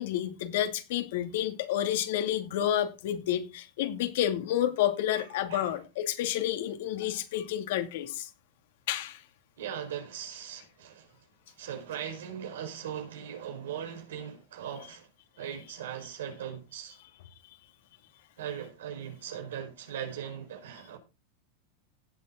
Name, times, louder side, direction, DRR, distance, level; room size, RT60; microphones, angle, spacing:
voice 1, 0.0-8.3 8.9-9.2, left 11 dB, 65° left, 2.5 m, -30 dB
voice 2, 5.1-5.8 9.6-11.1 11.6-15.1 15.4-17.0 18.4-21.0, right 9 dB, 85° right, 4.6 m, -39 dB
17.0 x 7.6 x 3.8 m
supercardioid pair, 145°, 0 cm